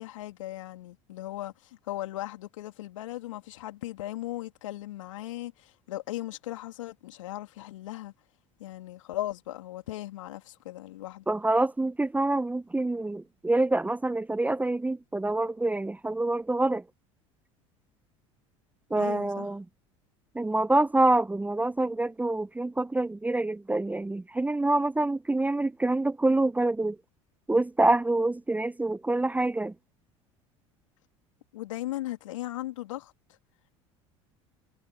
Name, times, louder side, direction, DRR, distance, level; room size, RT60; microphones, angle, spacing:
voice 1, 0.0-8.1 8.6-11.2 18.9-19.5 31.5-33.1, left 15 dB, 75° left, 3.2 m, -37 dB
voice 2, 11.3-16.8 18.9-19.6 20.3-27.0 27.5-29.7, right 2 dB, 10° right, 0.8 m, -26 dB
hypercardioid pair, 75°, 16 cm